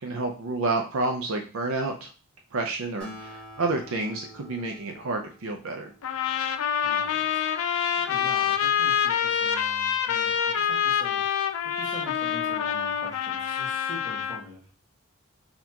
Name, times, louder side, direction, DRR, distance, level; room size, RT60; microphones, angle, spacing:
voice 1, 0.0-2.1 2.5-5.9, right 3 dB, 70° right, 3 dB, 0.5 m, -29 dB
Acoustic guitar, 3.0-6.7, equal, 5° left, 1.6 m, -47 dB
sound 1, 6.0-14.4, left 8 dB, 80° left, 0.4 m, -26 dB
voice 2, 6.8-7.5 8.0-14.7, equal, 15° right, -5 dB, 1.4 m, -44 dB
4.1 x 2.9 x 2.8 m, 0.36 s
head